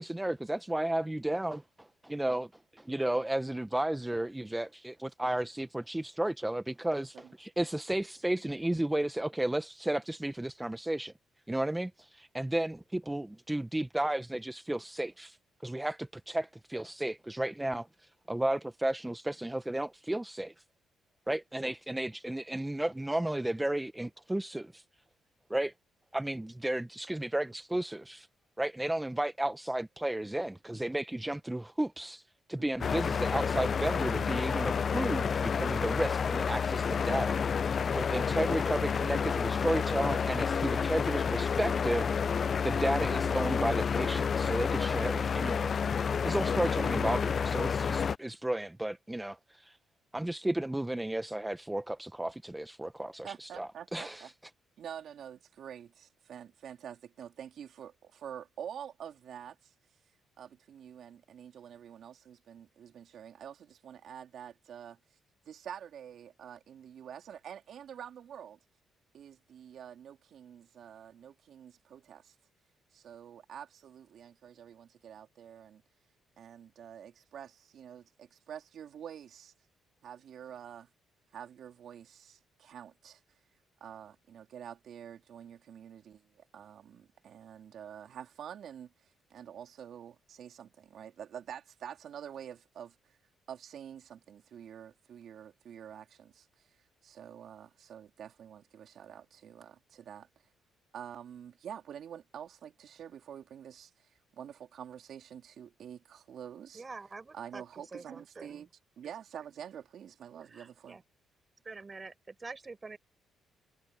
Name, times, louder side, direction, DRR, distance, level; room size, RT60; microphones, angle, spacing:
voice 1, 0.0-11.1 11.5-15.4 15.6-20.5 21.3-24.8 25.5-25.7 26.1-28.3 28.6-32.2 32.5-42.1 42.6-45.7 46.2-49.8 50.1-54.3, right 1 dB, 10° right, 0.9 m, -33 dB
voice 2, 32.6-32.9 53.2-54.3 54.8-59.7 60.4-65.0 65.4-68.6 69.1-72.3 72.9-75.8 76.4-79.5 80.0-80.9 81.3-83.2 83.8-93.2 93.5-96.7 97.0-100.3 100.9-106.8 107.3-108.7 109.0-111.0, right 9 dB, 65° right, 3.4 m, -47 dB
Airplane Sound, 32.8-48.2, left 6 dB, 45° left, 0.4 m, -30 dB
voice 3, 106.7-107.6 107.9-108.6 110.5-111.0 111.6-113.0, right 3 dB, 30° right, 6.5 m, -46 dB
cardioid pair, 90°, 0 cm